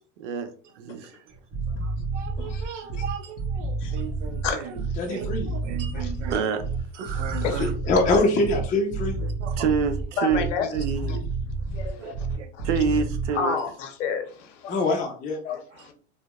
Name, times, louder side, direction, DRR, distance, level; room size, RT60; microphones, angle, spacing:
voice 1, 0.2-1.2 1.7-7.7 9.2-10.5 10.7-11.2 11.7-13.6, right 6 dB, 90° right, 8 dB, 0.5 m, -30 dB
sound 1, 1.3-13.4, right 3 dB, 45° right, 0.9 m, -30 dB
voice 2, 2.4-3.0 3.8-4.0 4.4-4.6 5.9-6.1 7.1-7.6 8.1-8.2 10.2-10.8 11.1-11.2 11.7-12.3 12.5-12.7 13.3-14.9 15.4-15.9, left 6 dB, 90° left, 6 dB, 0.6 m, -31 dB
voice 3, 5.0-5.5 7.6-9.1 14.7-15.4, left 2 dB, 25° left, 0 dB, 0.5 m, -23 dB
2.7 x 2.1 x 2.3 m, 0.41 s
supercardioid pair, 110°, 35 cm